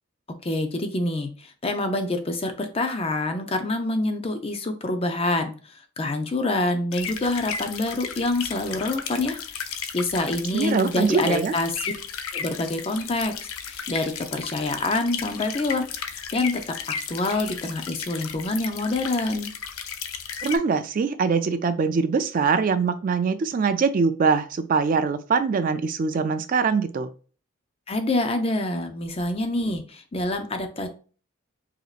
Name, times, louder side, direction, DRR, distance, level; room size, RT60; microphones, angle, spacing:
voice 1, 0.4-5.5 6.0-11.9 12.3-16.6 17.1-19.5 27.9-30.9, left 2 dB, 30° left, 7 dB, 0.5 m, -26 dB
sound 1, 6.9-20.6, left 7 dB, 85° left, 0.5 m, -35 dB
voice 2, 10.5-11.5 20.4-27.1, right 5 dB, 40° right, 10 dB, 0.3 m, -23 dB
4.9 x 2.8 x 2.4 m, 0.38 s
head